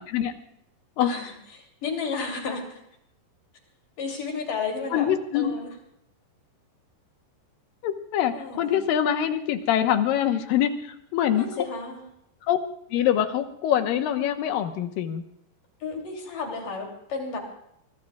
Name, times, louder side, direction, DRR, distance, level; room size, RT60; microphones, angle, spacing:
voice 1, 1.0-2.8 4.0-5.1 5.3-5.7 8.3-8.8 11.3-12.0 15.8-17.4, left 4 dB, 50° left, 1 dB, 4.3 m, -32 dB
voice 2, 4.9-5.5 7.8-11.5 12.5-12.6 12.9-15.2, left 10 dB, 70° left, 7 dB, 2.4 m, -24 dB
24.5 x 20.5 x 2.4 m, 0.75 s
omnidirectional pair, 4.9 m